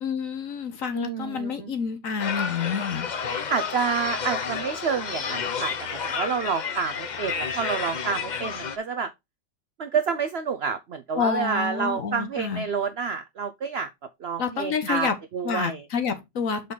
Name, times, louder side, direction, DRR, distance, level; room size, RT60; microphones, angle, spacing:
voice 1, 0.0-3.1 11.1-12.6 14.4-15.2 15.4-16.7, left 6 dB, 55° left, 1.3 m, -28 dB
voice 2, 0.9-1.7 3.5-9.1 9.8-13.9 14.2-15.1 15.3-15.8, right 6 dB, 70° right, 0.6 m, -28 dB
sound 1, 2.2-8.8, left 6 dB, 75° left, 0.4 m, -31 dB
6.7 x 5.1 x 3.8 m
omnidirectional pair, 1.9 m